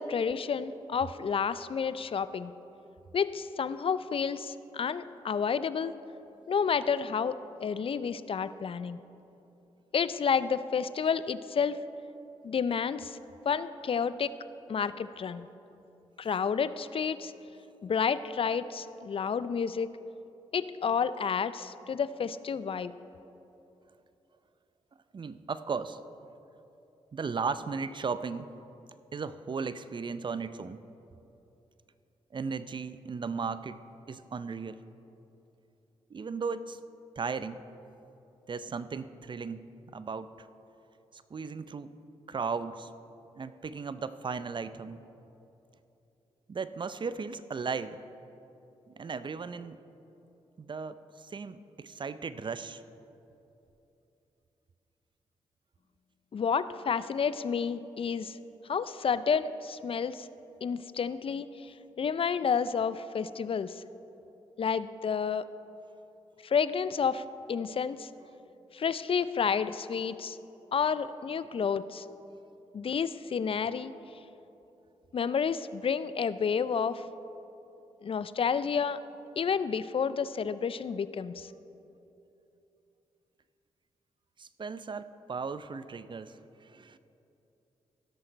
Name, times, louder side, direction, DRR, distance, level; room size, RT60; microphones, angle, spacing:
voice 1, 0.0-2.5 3.1-6.0 6.5-9.0 9.9-11.8 12.4-13.2 13.5-14.3 14.7-15.5 16.2-17.3 17.8-19.9 20.5-23.0 56.3-58.4 58.7-60.3 60.6-63.8 64.6-65.4 66.4-68.1 68.7-70.4 70.7-72.0 72.7-73.9 75.1-77.0 78.0-79.0 79.4-81.5, left 6 dB, 50° left, 15 dB, 0.4 m, -30 dB
voice 2, 25.1-26.0 27.1-28.5 29.1-30.8 32.3-33.8 34.1-34.8 36.1-36.8 37.2-37.6 38.5-39.6 39.9-40.5 41.1-41.9 42.3-42.9 43.4-45.0 46.5-48.0 48.9-49.8 50.6-52.8 84.4-87.0, right 5 dB, 40° right, 14 dB, 0.5 m, -36 dB
16.0 x 6.4 x 4.5 m, 2.9 s
supercardioid pair, 45°, 12 cm